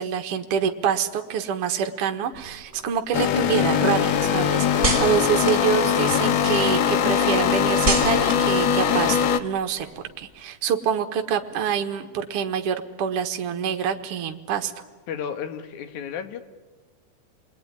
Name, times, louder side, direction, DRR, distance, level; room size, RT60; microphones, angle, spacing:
voice 1, 0.0-9.9 10.2-14.8, right 8 dB, 55° right, 5 dB, 2.2 m, -26 dB
sound 1, 2.3-6.5 6.9-10.3, right 2 dB, 25° right, 2.8 m, -32 dB
sound 2, 3.1-9.4, left 8 dB, 65° left, 1.4 m, -21 dB
voice 2, 15.1-16.5, left 7 dB, 90° left, 9 dB, 2.9 m, -33 dB
28.5 x 21.0 x 9.8 m, 1.3 s
omnidirectional pair, 3.3 m